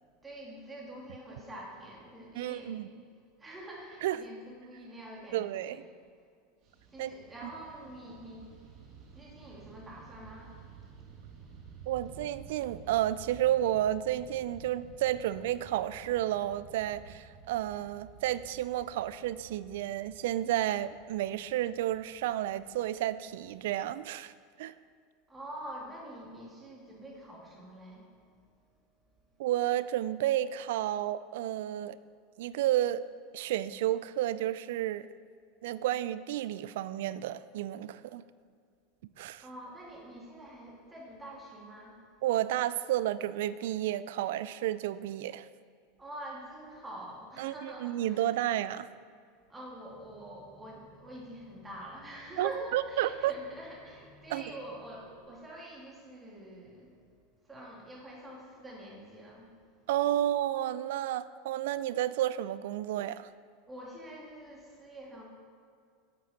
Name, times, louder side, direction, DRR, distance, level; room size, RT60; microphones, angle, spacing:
voice 1, 0.2-2.8 3.4-5.8 6.9-8.7 9.1-10.6 11.4-11.6 25.3-28.1 39.4-42.0 46.0-48.5 49.5-56.9 57.4-59.5 63.7-65.2, right 1 dB, 15° right, -3 dB, 2.1 m, -46 dB
voice 2, 2.4-2.9 4.0-4.2 5.3-5.8 7.0-7.1 11.9-24.3 24.6-24.7 29.4-32.0 32.4-33.0 33.3-35.1 35.6-38.2 39.2-39.4 42.2-45.5 47.4-48.9 52.4-53.3 54.3-54.5 59.9-63.3, right 13 dB, 70° right, 16 dB, 0.3 m, -31 dB
Fixed-wing aircraft airplane, 6.6-24.0, right 6 dB, 50° right, 1.4 m, -53 dB
sound 1, 49.9-55.3, left 2 dB, 35° right, 2.5 m, -61 dB
8.9 x 7.5 x 4.1 m, 2.2 s
hypercardioid pair, 90°, 0 cm